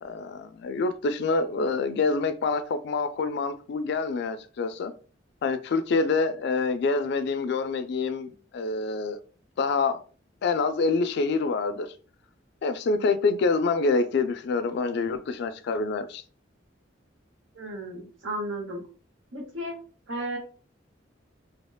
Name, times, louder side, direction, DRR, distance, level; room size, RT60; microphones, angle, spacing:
voice 1, 0.0-4.9 5.4-9.2 9.6-10.0 10.4-11.9 12.6-16.2, left 4 dB, 60° left, 0.3 m, -26 dB
voice 2, 17.5-18.8 19.3-19.8 20.1-20.4, right 1 dB, 85° right, 0.8 m, -34 dB
2.8 x 2.1 x 2.2 m
head